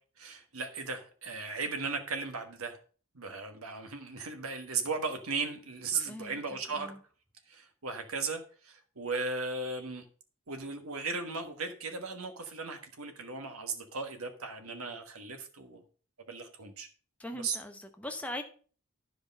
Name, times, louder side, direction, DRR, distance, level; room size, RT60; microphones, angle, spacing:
voice 1, 0.2-2.8 3.1-6.9 7.5-10.0 10.5-15.8 16.3-16.9 17.3-17.6, right 4 dB, 85° right, 1.5 m, -36 dB
voice 2, 6.0-6.4 6.7-7.0 17.2-18.4, left 1 dB, 5° left, 0.9 m, -40 dB
10.5 x 5.0 x 5.3 m
head